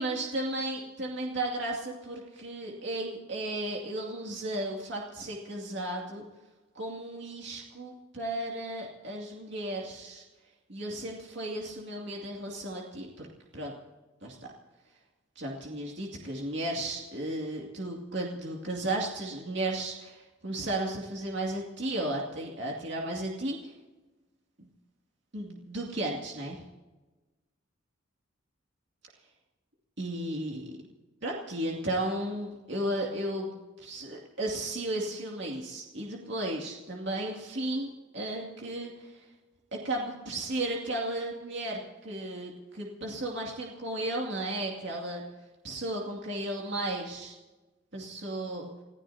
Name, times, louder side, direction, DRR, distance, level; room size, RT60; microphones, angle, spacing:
voice 1, 0.0-6.2 6.7-10.2 10.7-13.3 13.5-13.7 14.2-14.4 15.4-23.7 25.3-26.6 30.0-30.7 31.2-33.5 33.8-39.2 39.7-45.2 45.6-47.4 47.9-48.7, right 1 dB, 60° right, -1 dB, 2.5 m, -34 dB
30.0 x 15.5 x 2.8 m, 1.2 s
head